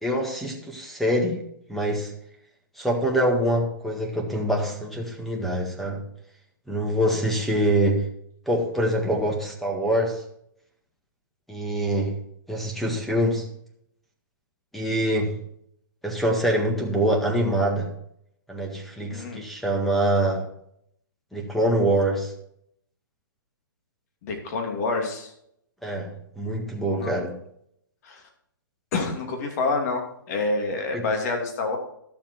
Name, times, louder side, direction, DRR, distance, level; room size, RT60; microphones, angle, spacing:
voice 1, 0.0-1.4 1.7-2.1 2.8-6.0 6.7-8.1 8.4-10.2 11.5-12.2 12.5-13.5 14.7-15.4 16.0-17.9 18.5-20.5 21.3-22.3 25.8-27.3 30.9-31.0, right 1 dB, ahead, 1 dB, 1.7 m, -24 dB
voice 2, 24.2-25.3 26.9-27.2 28.0-28.2 28.9-31.8, left 3 dB, 45° left, 3 dB, 2.7 m, -27 dB
12.0 x 7.2 x 4.6 m, 0.72 s
hypercardioid pair, 145°, 12 cm